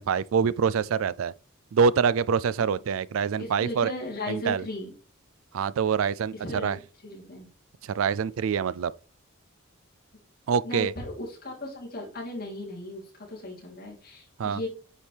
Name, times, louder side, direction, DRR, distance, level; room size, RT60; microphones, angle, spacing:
voice 1, 0.0-1.3 1.7-3.9 4.3-4.6 5.5-6.8 7.8-8.9 10.5-10.9 14.4-14.6, right 6 dB, 75° right, 0.4 m, -25 dB
voice 2, 3.4-4.9 6.4-6.7 7.0-7.5 10.6-13.0 13.3-14.7, left 1 dB, 45° left, 3.5 m, -36 dB
9.7 x 4.6 x 3.4 m
head